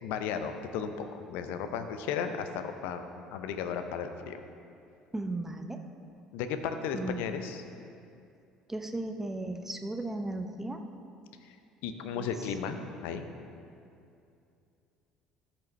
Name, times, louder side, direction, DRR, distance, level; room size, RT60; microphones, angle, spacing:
voice 1, 0.0-3.0 3.3-4.4 6.3-7.6 11.4-11.6 11.8-13.3, left 7 dB, 60° left, 8 dB, 0.5 m, -35 dB
voice 2, 5.1-5.8 6.9-7.2 8.7-10.8 12.1-12.3, right 2 dB, 10° right, 6 dB, 0.7 m, -35 dB
13.5 x 5.9 x 3.2 m, 2.5 s
figure-of-eight pair, 55°, 3 cm